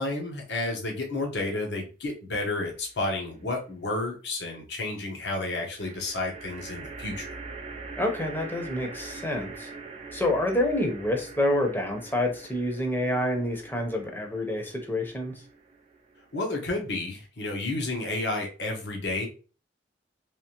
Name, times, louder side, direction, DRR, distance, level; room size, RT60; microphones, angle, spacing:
voice 1, 0.0-7.3 16.3-19.3, left 2 dB, 70° left, 1 dB, 1.0 m, -31 dB
sound 1, 2.6-3.3 5.7-17.1, right 4 dB, 35° right, 0.4 m, -44 dB
voice 2, 8.0-9.7 10.1-15.4, left 1 dB, 10° left, 3 dB, 0.7 m, -28 dB
3.4 x 3.2 x 2.9 m, 0.36 s
head